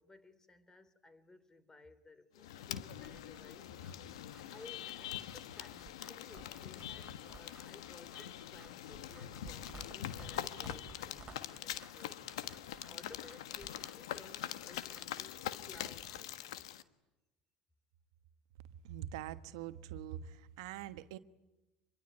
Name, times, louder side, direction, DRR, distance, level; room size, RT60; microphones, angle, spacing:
voice 1, 0.0-3.7 4.4-12.2 12.9-16.8, left 3 dB, 20° left, 3.3 m, -58 dB
sound 1, 2.4-16.8, left 12 dB, 80° left, 1.4 m, -44 dB
sound 2, 3.0-16.2, right 5 dB, 25° right, 3.6 m, -58 dB
voice 2, 18.8-21.2, right 11 dB, 75° right, 1.2 m, -44 dB
26.5 x 22.5 x 9.9 m
hypercardioid pair, 85°, 3 cm